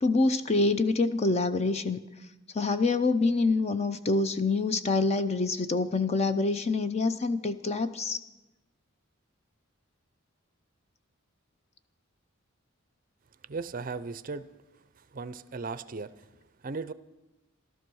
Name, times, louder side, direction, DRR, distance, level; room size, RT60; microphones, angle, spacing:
voice 1, 0.0-2.0 2.5-8.2, left 3 dB, 30° left, 11 dB, 0.6 m, -26 dB
voice 2, 13.5-14.5 15.1-16.1 16.6-16.9, right 4 dB, 40° right, 14 dB, 0.5 m, -36 dB
14.5 x 12.5 x 6.2 m, 1.0 s
head